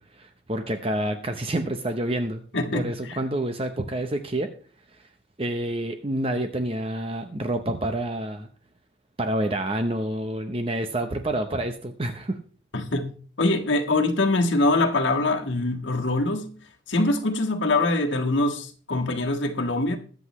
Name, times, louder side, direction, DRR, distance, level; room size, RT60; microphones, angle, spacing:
voice 1, 0.1-2.4 2.7-4.5 4.9-5.1 5.4-8.5 9.2-12.4, right 1 dB, 30° right, 0.7 m, -28 dB
voice 2, 2.5-3.2 12.7-13.1 13.4-16.5 16.9-20.0, left 2 dB, 70° left, 1.6 m, -23 dB
21.5 x 7.8 x 3.1 m
head